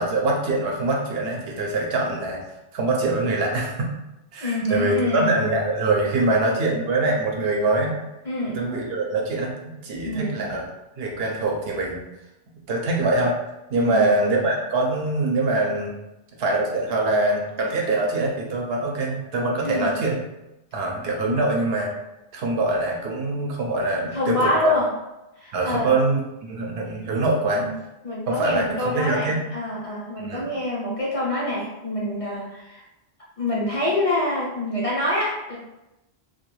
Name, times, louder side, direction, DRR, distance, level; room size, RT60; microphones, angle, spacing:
voice 1, 0.0-2.4 2.7-3.9 4.3-8.0 8.5-9.5 9.8-10.7 11.0-12.0 12.7-13.4 13.7-15.9 16.4-20.2 20.7-21.9 22.3-24.7 25.5-26.2 26.5-27.7 28.3-29.4 30.2-30.5, right 2 dB, 70° right, -1 dB, 0.8 m, -23 dB
voice 2, 4.4-5.3 8.2-8.6 10.0-10.4 13.8-14.2 19.6-19.9 21.2-21.4 24.1-24.9 25.4-25.9 27.6-27.7 28.0-32.8 33.4-35.6, left 1 dB, 45° left, -6 dB, 0.5 m, -26 dB
2.3 x 2.2 x 3.0 m, 0.95 s
omnidirectional pair, 1.1 m